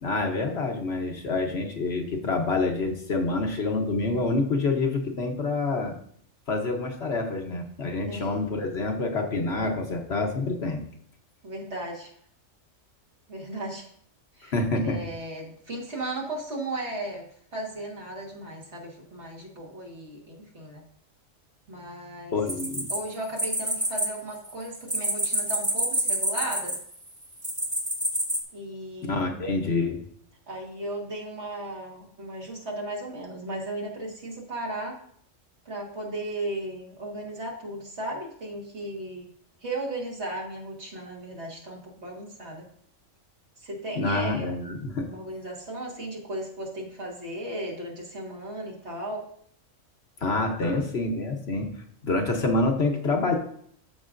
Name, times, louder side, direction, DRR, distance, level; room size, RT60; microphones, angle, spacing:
voice 1, 0.0-5.9 6.5-10.8 14.5-15.0 22.3-22.9 29.0-30.0 43.9-45.1 50.2-51.7 52.0-53.4, left 3 dB, 55° left, 3 dB, 1.2 m, -27 dB
voice 2, 11.4-12.1 13.3-13.9 14.4-20.8 21.7-22.4 22.9-26.8 28.5-29.3 30.5-35.0 35.7-39.3 39.6-42.7 43.6-44.5 45.1-49.3 50.6-50.8, right 1 dB, 60° right, -1 dB, 1.9 m, -36 dB
sound 1, 22.5-24.1 24.3-26.9 27.4-28.4, right 1 dB, 15° right, 1.3 m, -27 dB
13.5 x 4.9 x 2.5 m, 0.63 s
omnidirectional pair, 1.3 m